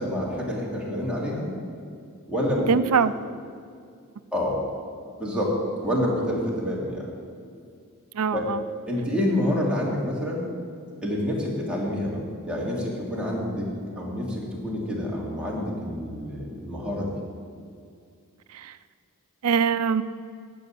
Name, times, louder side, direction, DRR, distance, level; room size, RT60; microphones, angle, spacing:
voice 1, 0.0-1.5 2.3-2.7 4.3-4.6 5.2-5.5 5.8-7.1 8.3-8.5 8.9-10.4 11.0-13.7 14.0-17.2, left 1 dB, 5° right, -5 dB, 2.9 m, -27 dB
voice 2, 2.7-3.1 8.1-8.6 18.5-18.7 19.4-20.0, right 6 dB, 80° right, 14 dB, 0.5 m, -23 dB
15.5 x 5.4 x 9.9 m, 2.3 s
head